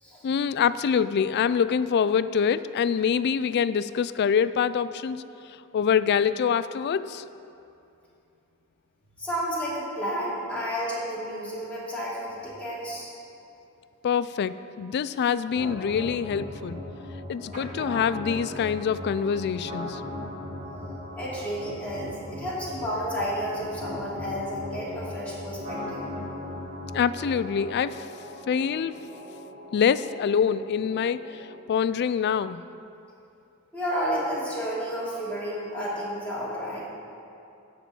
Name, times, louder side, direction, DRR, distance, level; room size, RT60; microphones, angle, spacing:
voice 1, 0.2-5.2 5.7-7.2 14.0-16.8 17.3-20.0 26.9-28.0 28.5-28.9 29.7-31.3 31.7-32.6, left 7 dB, 50° left, 15 dB, 0.3 m, -25 dB
voice 2, 9.2-13.1 21.2-26.0 33.7-36.8, equal, 5° left, -8 dB, 2.8 m, -31 dB
sound 1, 15.5-31.5, left 1 dB, 40° right, 2.8 m, -38 dB
12.5 x 4.4 x 8.4 m, 2.7 s
head